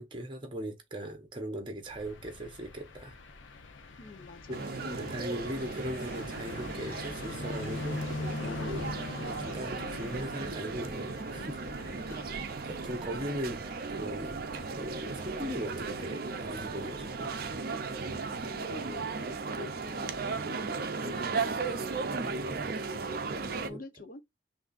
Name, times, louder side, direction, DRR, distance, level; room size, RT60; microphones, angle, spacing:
voice 1, 0.0-3.2 4.5-8.1 8.4-12.2 12.6-14.4 14.8-17.4 22.1-22.8 23.7-23.8, equal, 25° right, 0.9 m, -39 dB
sound 1, 1.8-19.8, left 3 dB, 75° left, 0.8 m, -44 dB
voice 2, 4.0-4.7 12.0-12.3 18.4-20.5 21.0-22.0 23.6-24.2, left 3 dB, 45° left, 0.8 m, -47 dB
sound 2, 4.5-23.7, right 4 dB, 50° right, 0.5 m, -36 dB
5.9 x 2.7 x 2.5 m
head